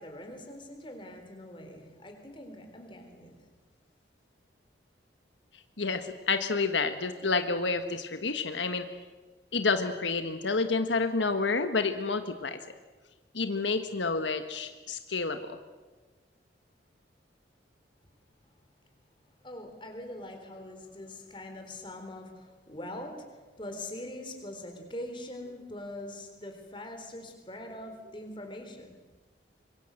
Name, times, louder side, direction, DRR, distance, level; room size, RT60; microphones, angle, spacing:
voice 1, 0.0-3.3 19.4-29.0, left 1 dB, 25° left, 4 dB, 4.1 m, -43 dB
voice 2, 5.8-8.8 9.5-12.6 13.3-15.6, left 4 dB, 90° left, 8 dB, 1.5 m, -29 dB
25.5 x 23.0 x 7.9 m, 1.3 s
head